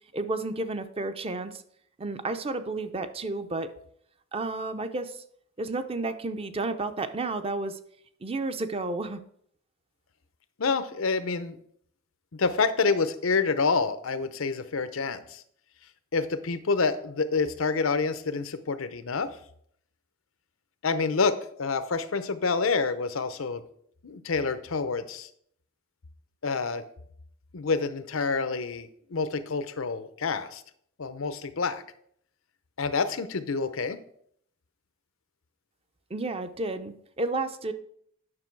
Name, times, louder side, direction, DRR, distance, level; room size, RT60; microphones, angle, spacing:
voice 1, 0.1-1.6 2.0-3.7 4.3-5.2 5.6-7.8 8.2-9.2 36.1-37.7, right 2 dB, 30° right, 10 dB, 0.6 m, -31 dB
voice 2, 10.6-11.6 12.3-15.4 16.1-19.3 20.8-23.6 24.0-25.3 26.4-26.8 27.5-30.6 31.0-31.8 32.8-34.0, left 4 dB, 80° left, 12 dB, 0.7 m, -28 dB
9.7 x 6.1 x 4.6 m, 0.67 s
head